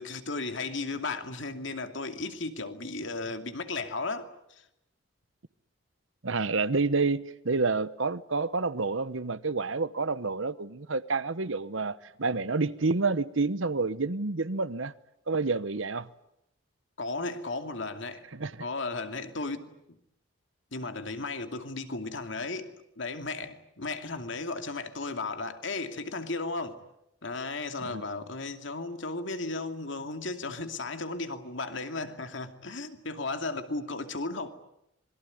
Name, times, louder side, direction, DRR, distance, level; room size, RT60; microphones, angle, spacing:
voice 1, 0.0-4.7 17.0-18.2 18.6-19.7 20.7-26.8 27.2-34.5, left 3 dB, 65° left, 2.5 m, -35 dB
voice 2, 6.2-14.9 15.3-16.1 18.3-18.5 27.8-28.0, right 3 dB, 70° right, 1.1 m, -29 dB
26.5 x 22.5 x 9.4 m
head